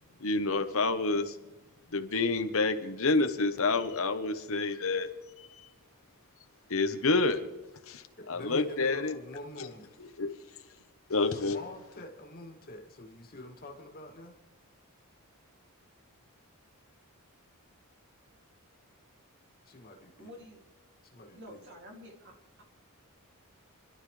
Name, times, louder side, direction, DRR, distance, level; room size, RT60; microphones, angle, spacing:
voice 1, 0.2-1.4 1.9-5.1 5.4-5.7 6.7-7.4 7.9-9.1 9.6-9.7 10.2-10.3 11.1-11.6, left 3 dB, 65° left, 8 dB, 1.1 m, -28 dB
voice 2, 8.2-9.9 11.3-14.4 19.7-20.3 21.0-21.6, left 1 dB, 45° left, 2 dB, 2.4 m, -45 dB
voice 3, 20.2-20.6 21.3-22.6, equal, 55° right, 2 dB, 2.8 m, -49 dB
28.5 x 12.0 x 3.3 m, 1.1 s
head